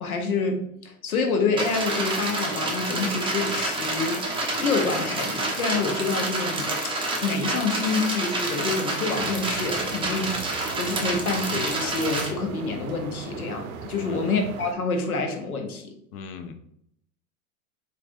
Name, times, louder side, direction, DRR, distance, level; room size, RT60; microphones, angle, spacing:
voice 1, 0.0-6.9 7.2-15.9, left 4 dB, 85° left, 5 dB, 0.8 m, -27 dB
sound 1, 1.6-12.3, right 2 dB, 10° right, 0.6 m, -28 dB
sound 2, 9.1-14.7, right 6 dB, 75° right, 0.6 m, -39 dB
voice 2, 14.0-14.3 16.1-16.6, left 5 dB, 35° left, 7 dB, 0.4 m, -38 dB
4.4 x 2.5 x 2.5 m, 0.72 s
hypercardioid pair, 85°, 42 cm